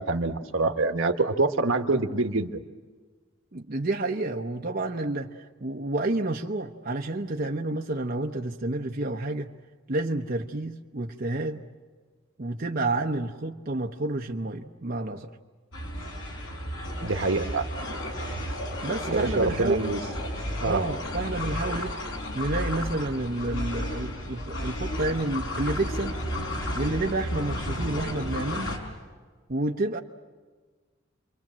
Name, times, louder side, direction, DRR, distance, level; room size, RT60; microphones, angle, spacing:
voice 1, 0.0-2.6 17.0-17.7 19.1-20.0 20.6-20.8, right 3 dB, 75° right, 7 dB, 1.3 m, -25 dB
voice 2, 3.5-9.5 9.9-11.6 12.4-15.3 18.8-19.9 20.6-21.9 22.3-26.2 26.7-28.8 29.5-30.0, right 2 dB, 45° right, 2 dB, 0.9 m, -29 dB
sound 1, 15.7-28.8, left 1 dB, 75° left, 4.9 m, -32 dB
29.5 x 23.5 x 7.5 m, 1.4 s
head